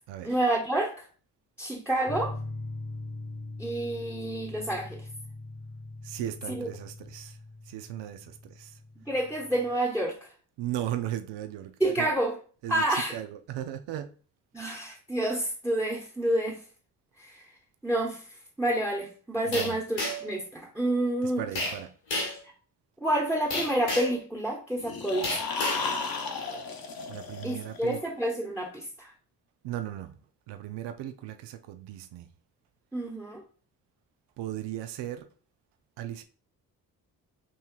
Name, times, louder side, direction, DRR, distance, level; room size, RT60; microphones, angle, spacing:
voice 1, 0.2-1.1 1.6-2.4 3.6-5.0 6.5-6.7 9.0-10.3 11.8-12.4 12.7-13.2 14.5-16.6 17.2-17.4 17.8-18.2 18.6-21.4 23.0-25.4 27.4-29.1 32.9-33.4, right 1 dB, 5° right, 1.1 m, -29 dB
sound 1, 2.1-9.7, left 2 dB, 30° left, 1.1 m, -41 dB
voice 2, 6.0-7.4 7.7-8.8 10.6-12.1 12.6-14.1 19.5-19.8 21.2-21.9 27.1-28.0 29.6-30.2 30.5-32.3 34.4-35.3 36.0-36.2, right 12 dB, 70° right, 0.6 m, -37 dB
sound 2, 19.5-20.4 21.6-21.8 22.1-22.4 23.5-24.2 25.2-25.9, left 1 dB, 85° left, 2.1 m, -31 dB
sound 3, 24.8-27.9, left 4 dB, 55° left, 1.0 m, -34 dB
5.4 x 3.0 x 2.3 m
hypercardioid pair, 40°, 43 cm